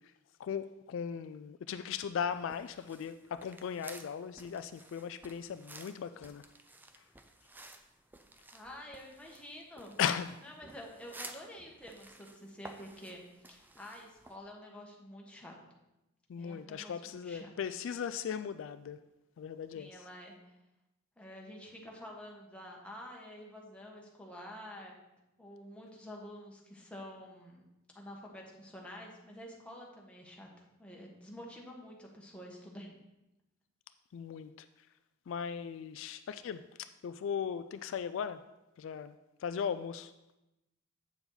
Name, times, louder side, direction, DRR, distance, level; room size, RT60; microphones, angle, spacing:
voice 1, 0.4-6.5 10.0-10.3 16.3-19.0 19.4-20.0 34.1-34.7 35.3-38.4 38.8-40.1, left 7 dB, 65° left, 11 dB, 0.3 m, -37 dB
sound 1, 2.3-14.4, right 2 dB, 10° right, 0.5 m, -54 dB
voice 2, 8.5-10.0 10.4-15.6 16.4-17.5 19.7-20.5 21.2-25.0 25.4-27.6 27.9-30.5 30.8-33.0, equal, 5° left, -2 dB, 1.3 m, -49 dB
8.1 x 7.0 x 4.0 m, 0.95 s
head